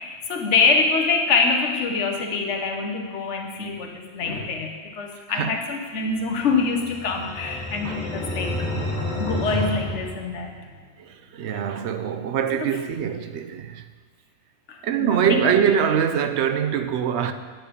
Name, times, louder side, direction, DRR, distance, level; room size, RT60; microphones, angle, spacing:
voice 1, 0.0-8.5 9.2-10.6 12.5-12.7 14.7-15.5, left 4 dB, 85° left, 1.3 m, -25 dB
sound 1, 6.3-10.9, left 1 dB, 30° left, 2.3 m, -30 dB
voice 2, 11.0-13.8 14.8-17.3, right 8 dB, 75° right, 0.9 m, -23 dB
9.0 x 8.9 x 5.0 m
omnidirectional pair, 1.2 m